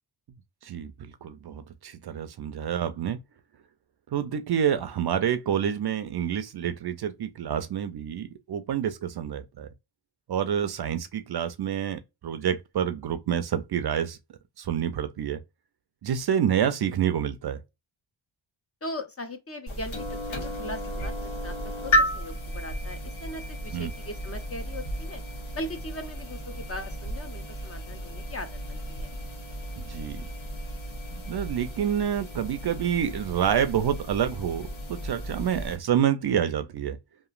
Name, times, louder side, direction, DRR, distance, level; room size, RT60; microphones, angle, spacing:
voice 1, 1.2-3.2 4.1-9.7 10.3-14.2 14.6-15.4 16.0-17.6 23.7-23.9 29.8-30.2 31.1-37.0, right 9 dB, 50° right, 0.5 m, -28 dB
voice 2, 18.8-19.9 20.3-21.5 21.8-25.2 25.5-29.1, left 1 dB, 30° left, 0.6 m, -39 dB
sound 1, 19.7-35.8, equal, 70° left, 1.1 m, -33 dB
2.9 x 2.4 x 2.4 m
cardioid pair, 60°, 49 cm